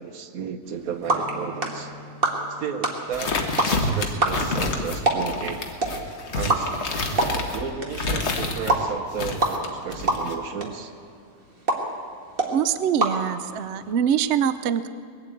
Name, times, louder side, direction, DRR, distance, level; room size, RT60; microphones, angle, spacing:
voice 1, 0.0-1.9 2.6-3.4 3.7-5.7 6.3-6.9 7.5-10.9, right 7 dB, 60° right, 9 dB, 1.2 m, -33 dB
sound 1, 0.6-13.9, right 2 dB, 35° right, 1.7 m, -29 dB
Strum, 1.0-5.7 6.1-6.3, left 1 dB, 20° left, 4.7 m, -46 dB
sound 2, 3.1-8.7 9.1-10.4, left 2 dB, 45° left, 1.4 m, -28 dB
voice 2, 12.5-14.9, right 9 dB, 80° right, 13 dB, 0.6 m, -24 dB
20.5 x 8.2 x 8.5 m, 2.4 s
omnidirectional pair, 1.9 m